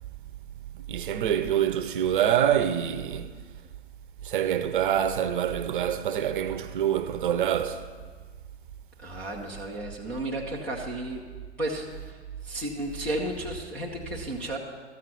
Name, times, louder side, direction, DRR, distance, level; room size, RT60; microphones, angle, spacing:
voice 1, 0.7-3.3 4.2-7.9, right 10 dB, 45° right, 0.7 m, -26 dB
voice 2, 9.0-11.2 11.6-12.2 12.4-14.6, right 1 dB, 5° left, 0.4 m, -33 dB
13.5 x 7.4 x 5.8 m
figure-of-eight pair, 120°, 35 cm